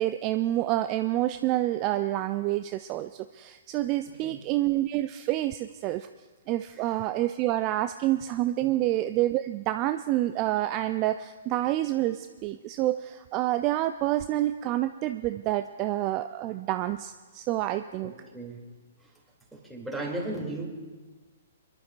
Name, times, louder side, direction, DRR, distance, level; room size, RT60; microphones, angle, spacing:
voice 1, 0.0-6.1 6.5-18.1, right 15 dB, 35° right, 9 dB, 0.4 m, -28 dB
voice 2, 4.1-4.4 6.7-7.0 8.6-8.7 18.0-18.6 19.0-19.1 19.5-20.7, right 2 dB, ahead, -3 dB, 2.7 m, -36 dB
29.5 x 11.5 x 2.5 m, 1.3 s
figure-of-eight pair, 120°, 0 cm